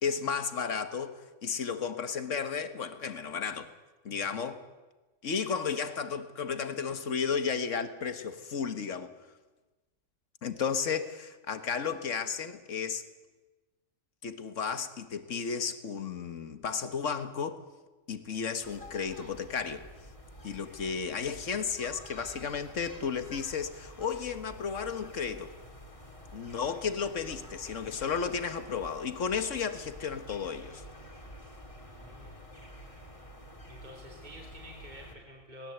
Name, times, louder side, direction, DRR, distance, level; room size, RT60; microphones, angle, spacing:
voice 1, 0.0-3.7 4.0-4.6 5.2-9.1 10.4-13.0 14.2-17.6 18.1-19.8 20.4-25.5 26.3-30.8, left 6 dB, 70° left, 1.7 m, -33 dB
sound 1, 18.6-35.1, left 1 dB, 25° left, 2.7 m, -49 dB
voice 2, 31.9-32.3 33.7-35.7, equal, 35° right, 3.5 m, -49 dB
21.0 x 19.0 x 8.0 m
omnidirectional pair, 1.3 m